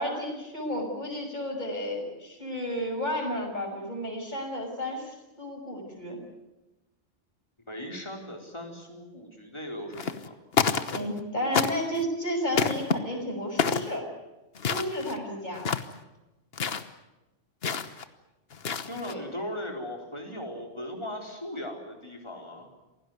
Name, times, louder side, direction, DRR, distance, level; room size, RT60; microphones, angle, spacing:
voice 1, 0.0-6.2 10.9-14.1 14.6-15.7 19.1-19.2, equal, 40° left, 1 dB, 6.7 m, -32 dB
voice 2, 7.7-10.4 18.9-22.7, left 1 dB, 25° left, 1 dB, 4.4 m, -38 dB
sound 1, 9.9-10.3 10.5-11.2 11.5-12.0 12.5-13.0 13.6-13.9 14.6-15.2 15.5-16.0 16.5-16.9 17.6-18.0 18.5-19.1, left 5 dB, 55° left, 1.4 m, -28 dB
27.0 x 17.5 x 9.4 m, 1.0 s
omnidirectional pair, 1.2 m